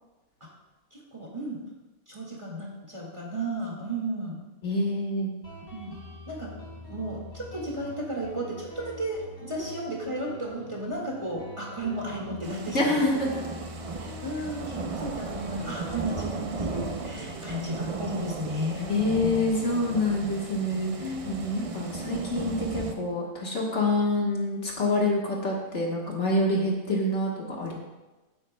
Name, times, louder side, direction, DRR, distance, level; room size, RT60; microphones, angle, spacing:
voice 1, 0.9-1.6 2.1-4.4 5.7-6.0 6.3-6.5 6.9-13.0 14.0-18.9 21.0-21.3, right 1 dB, 20° right, -3 dB, 1.9 m, -34 dB
voice 2, 4.6-5.3 12.7-13.4 18.9-20.9 21.3-27.7, left 1 dB, 55° left, -2 dB, 1.6 m, -26 dB
Guitar, 5.4-22.6, left 1 dB, 85° left, 3.9 m, -45 dB
sound 1, 12.4-22.9, right 4 dB, 50° right, 0.4 m, -36 dB
15.5 x 7.8 x 2.2 m, 1.1 s
omnidirectional pair, 1.5 m